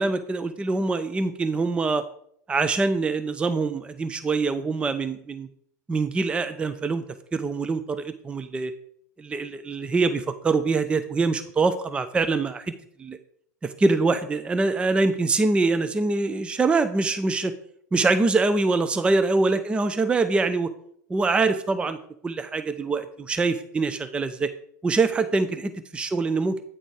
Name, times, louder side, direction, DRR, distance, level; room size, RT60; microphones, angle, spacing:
voice 1, 0.0-2.0 2.5-5.5 5.9-7.0 7.3-8.7 9.2-12.7 13.0-13.2 13.6-17.5 17.9-20.7 21.1-22.0 22.2-24.5 24.8-26.6, right 3 dB, 10° right, 10 dB, 0.4 m, -24 dB
8.9 x 4.0 x 4.8 m, 0.65 s
figure-of-eight pair, 85°, 9 cm